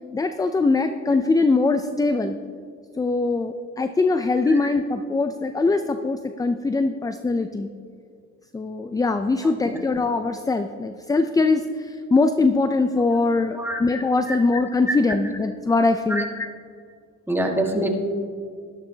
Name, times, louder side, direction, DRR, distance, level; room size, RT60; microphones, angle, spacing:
voice 1, 0.1-2.4 3.0-7.7 8.5-16.5, left 3 dB, 15° left, 9 dB, 0.3 m, -22 dB
voice 2, 13.4-13.8 14.3-14.4 14.9-15.0 16.1-16.2 17.3-17.9, right 1 dB, 5° right, 1 dB, 1.5 m, -26 dB
12.0 x 12.0 x 2.8 m, 2.2 s
cardioid pair, 90°, 30 cm